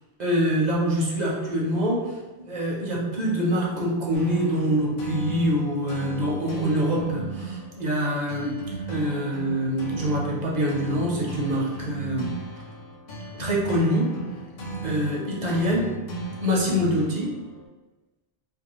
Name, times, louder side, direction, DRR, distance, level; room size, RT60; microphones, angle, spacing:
voice 1, 0.2-8.5 8.9-12.3 13.4-14.1 14.8-15.9 16.4-17.3, equal, 50° right, -3 dB, 0.6 m, -25 dB
sound 1, 4.1-17.7, right 3 dB, 60° left, 0.5 m, -36 dB
2.5 x 2.3 x 2.9 m, 1.2 s
omnidirectional pair, 1.2 m